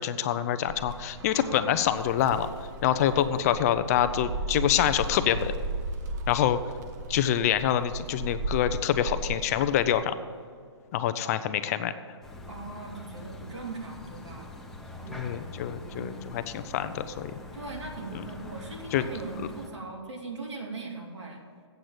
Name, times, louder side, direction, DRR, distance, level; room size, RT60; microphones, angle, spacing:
voice 1, 0.0-2.5 2.8-5.5 6.3-6.6 7.1-10.1 10.9-11.9 15.1-17.3 18.1-18.2 18.9-19.1 19.4-19.5, left 10 dB, 35° left, 11 dB, 0.5 m, -26 dB
Gull seagull, 0.7-10.0, right 2 dB, 35° right, 0.8 m, -36 dB
voice 2, 1.2-1.8 12.5-14.5 15.0-16.3 17.5-21.4, right 3 dB, 85° right, -1 dB, 2.9 m, -40 dB
sound 1, 12.2-19.7, left 2 dB, 5° left, 0.9 m, -44 dB
8.0 x 7.4 x 8.6 m, 2.1 s
hypercardioid pair, 145°, 15 cm